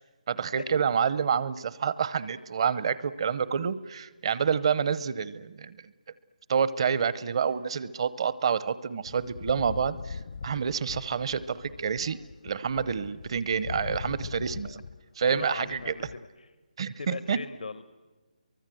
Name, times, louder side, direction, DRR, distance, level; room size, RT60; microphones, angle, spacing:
voice 1, 0.3-5.9 6.5-12.2 12.4-14.8 15.2-15.9 16.8-17.4, right 7 dB, 40° right, 17 dB, 0.8 m, -28 dB
sound 1, 9.1-15.0 15.3-16.2, left 5 dB, 60° left, 0.8 m, -41 dB
voice 2, 15.2-16.3 17.0-17.8, left 4 dB, 80° left, 13 dB, 1.0 m, -38 dB
29.5 x 23.5 x 7.8 m, 1.3 s
hypercardioid pair, 165°, 4 cm